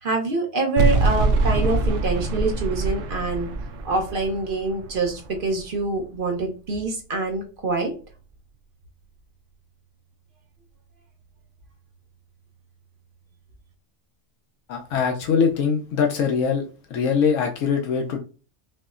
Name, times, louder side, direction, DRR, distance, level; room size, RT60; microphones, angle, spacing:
voice 1, 0.0-3.5 3.8-7.9, right 3 dB, 50° right, 1 dB, 1.0 m, -25 dB
sound 1, 0.8-5.9, right 3 dB, 80° right, 0.9 m, -24 dB
voice 2, 14.7-16.6 16.9-18.2, left 6 dB, 90° left, 2 dB, 1.0 m, -22 dB
5.5 x 2.1 x 2.4 m, 0.36 s
omnidirectional pair, 1.3 m